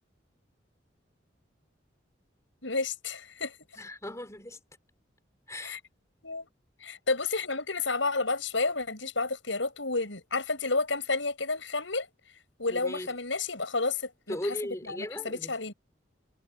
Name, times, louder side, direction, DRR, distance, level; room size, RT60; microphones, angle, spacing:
voice 1, 2.6-3.5 5.6-5.8 6.2-6.5 6.8-12.1 12.6-14.6 14.9-15.7, left 3 dB, 90° left, 7.6 m, -31 dB
voice 2, 3.8-4.6 5.5-5.8 12.7-13.1 14.3-15.5, left 1 dB, 15° left, 3.2 m, -37 dB
head